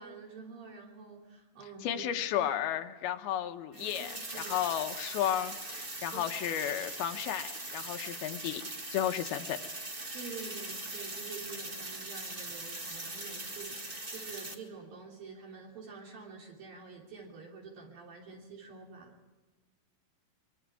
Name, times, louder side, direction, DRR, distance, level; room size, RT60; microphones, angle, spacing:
voice 1, 0.0-2.0 2.4-2.5 3.7-4.7 6.1-6.2 9.0-9.1 10.1-19.2, right 5 dB, 65° right, -2 dB, 4.9 m, -48 dB
voice 2, 1.8-8.6 8.9-9.6, left 11 dB, 80° left, 7 dB, 2.7 m, -33 dB
sound 1, 3.7-14.5, right 2 dB, 40° right, 0.7 m, -41 dB
24.5 x 24.5 x 4.7 m, 1.2 s
omnidirectional pair, 4.5 m